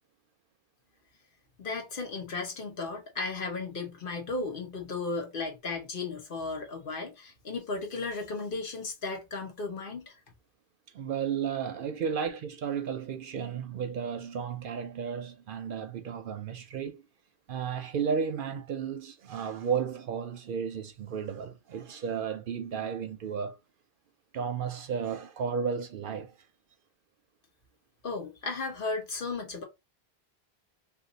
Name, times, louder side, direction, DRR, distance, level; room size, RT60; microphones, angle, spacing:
voice 1, 1.6-10.1 28.0-29.6, left 3 dB, 60° left, 1.0 m, -35 dB
voice 2, 10.9-17.0 17.5-23.6 24.3-26.3, right 7 dB, 65° right, 0.7 m, -33 dB
2.5 x 2.5 x 3.8 m
omnidirectional pair, 1.0 m